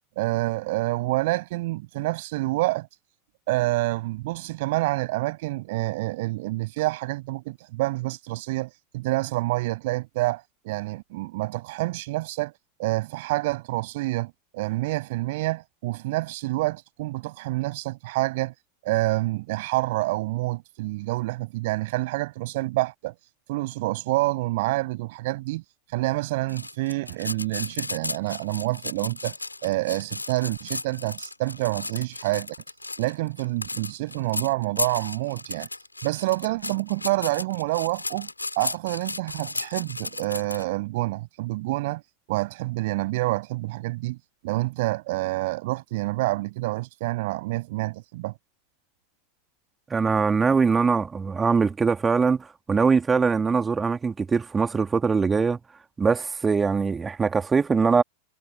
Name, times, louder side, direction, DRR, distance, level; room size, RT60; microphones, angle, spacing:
voice 1, 0.2-2.9 3.5-12.5 12.8-18.5 18.8-23.1 23.5-25.6 25.9-29.3 29.6-32.5 33.0-35.7 36.0-38.3 38.6-42.0 42.3-44.2 44.4-48.3, right 20 dB, 50° right, 7.8 m, -27 dB
sound 1, 26.5-40.6, left 2 dB, 80° left, 4.8 m, -34 dB
voice 2, 49.9-55.6 56.0-58.0, right 5 dB, 15° right, 2.6 m, -22 dB
figure-of-eight pair, 90°, 0 cm